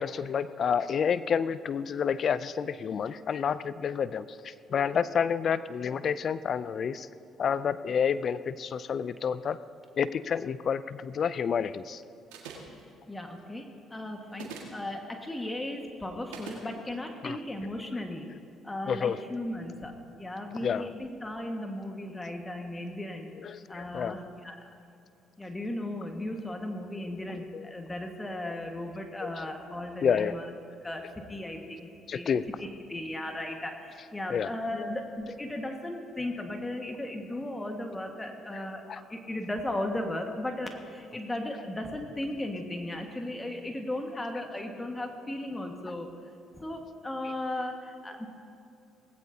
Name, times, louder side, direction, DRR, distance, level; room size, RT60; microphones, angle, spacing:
voice 1, 0.0-7.1 7.4-9.6 10.0-12.0 17.2-17.4 18.9-19.2 20.6-20.9 23.4-24.2 27.5-27.6 29.2-29.3 30.0-30.4 32.1-32.4 34.3-34.9 38.9-39.0, left 7 dB, 55° left, 16 dB, 0.4 m, -29 dB
sound 1, 12.3-12.8 14.3-14.8 16.3-16.6, right 6 dB, 85° right, 1.8 m, -42 dB
voice 2, 13.0-18.3 18.6-23.3 23.7-24.7 25.4-30.5 30.8-32.3 32.6-38.8 39.1-46.1 46.6-48.3, left 1 dB, 20° left, 3 dB, 1.6 m, -36 dB
18.5 x 16.0 x 2.8 m, 2.7 s
hypercardioid pair, 55°, 0 cm